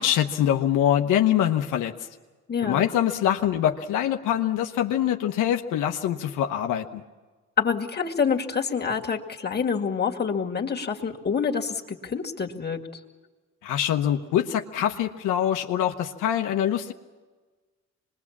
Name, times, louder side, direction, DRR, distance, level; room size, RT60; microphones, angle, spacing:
voice 1, 0.0-2.1 2.6-7.0 13.6-16.9, left 10 dB, 85° left, 4 dB, 1.1 m, -24 dB
voice 2, 2.5-2.8 7.6-12.8, left 6 dB, 35° left, 1 dB, 2.3 m, -27 dB
25.5 x 21.0 x 7.3 m, 1.3 s
cardioid pair, 90°, 30 cm